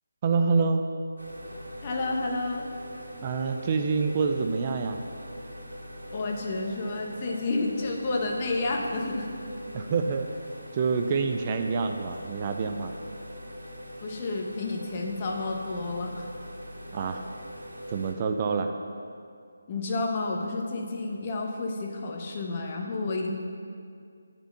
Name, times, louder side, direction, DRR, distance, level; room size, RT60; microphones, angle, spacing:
voice 1, 0.2-0.9 3.2-5.0 9.7-10.3 10.7-12.9 16.9-17.2 17.9-18.7, right 4 dB, 30° right, 5 dB, 0.4 m, -26 dB
sound 1, 1.2-18.1, equal, 90° right, 1.5 m, -42 dB
voice 2, 1.8-2.7 6.1-9.3 14.0-16.3 19.7-23.3, left 2 dB, 30° left, 1 dB, 0.9 m, -30 dB
6.7 x 4.5 x 6.8 m, 2.3 s
figure-of-eight pair, 155°, 0 cm